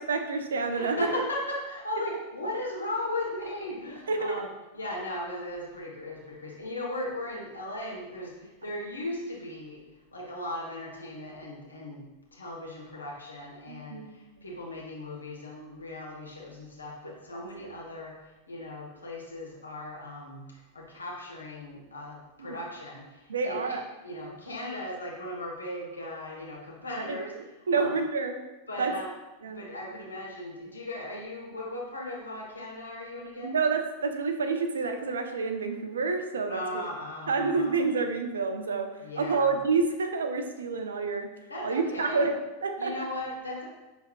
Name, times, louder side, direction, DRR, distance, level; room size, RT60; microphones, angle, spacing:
voice 1, 0.0-1.0 2.1-2.2 4.1-4.5 13.7-14.2 17.0-17.7 22.4-22.6 23.3-23.8 24.1-24.4 27.0-28.4 28.8-28.9 29.4-29.6 33.4-36.8 37.3-41.3 41.6-43.0, right 4 dB, 70° right, 6 dB, 0.4 m, -29 dB
voice 2, 0.7-4.5 4.7-9.8 10.1-12.0 12.3-18.1 18.5-20.5 20.7-23.8 24.0-27.3 27.7-27.9 28.7-29.1 29.5-33.6 36.5-37.7 39.0-39.5 41.5-42.2 42.8-43.6, left 1 dB, 75° left, -3 dB, 1.0 m, -37 dB
6.1 x 3.4 x 2.3 m, 1.1 s
figure-of-eight pair, 90°, 0 cm